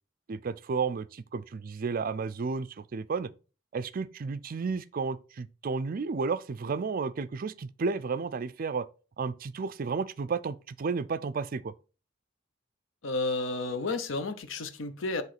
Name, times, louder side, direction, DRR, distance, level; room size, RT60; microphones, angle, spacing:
voice 1, 0.3-3.3 3.7-8.9 9.2-11.7, right 4 dB, 45° right, 0.4 m, -32 dB
voice 2, 13.0-15.2, left 3 dB, 75° left, 0.8 m, -31 dB
7.7 x 3.1 x 5.8 m
head